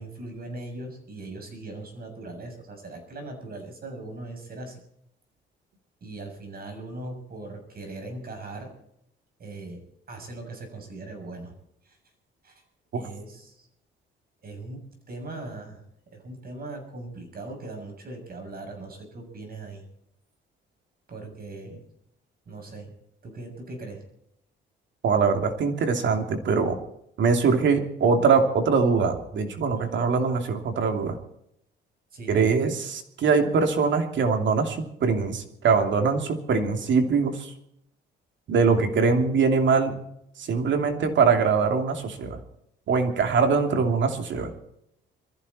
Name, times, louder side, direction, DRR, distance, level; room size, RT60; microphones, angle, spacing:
voice 1, 0.0-4.8 6.0-8.7 9.4-11.5 11.8-12.0 12.4-12.6 12.9-13.7 14.4-15.8 16.1-19.9 21.1-21.8 22.5-22.9 23.2-24.0 29.7-30.1 32.1-32.6, right 2 dB, 50° right, 4 dB, 7.2 m, -39 dB
voice 2, 25.0-26.8 27.2-31.2 32.3-37.5 38.5-39.9 40.4-42.4 42.9-44.5, right 5 dB, 70° right, 5 dB, 2.9 m, -22 dB
22.5 x 15.0 x 4.3 m, 0.75 s
cardioid pair, 90°, 20 cm